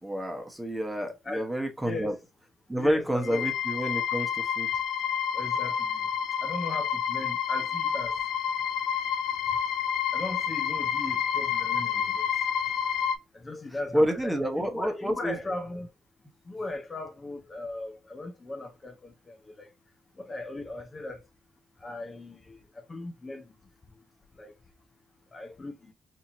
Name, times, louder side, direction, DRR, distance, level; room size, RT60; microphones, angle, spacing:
voice 1, 0.0-2.1 2.7-4.7 13.9-15.4, equal, 5° right, 1.1 m, -29 dB
voice 2, 2.8-3.4 5.3-6.0 6.4-8.2 10.1-12.3 13.3-15.9 16.5-19.7 20.2-21.2 21.8-22.6 22.9-23.4 24.4-24.5 25.3-25.9, left 2 dB, 30° left, 0.7 m, -38 dB
sound 1, 3.2-13.2, left 8 dB, 80° left, 0.5 m, -29 dB
4.4 x 2.8 x 2.7 m
cardioid pair, 90°, 0 cm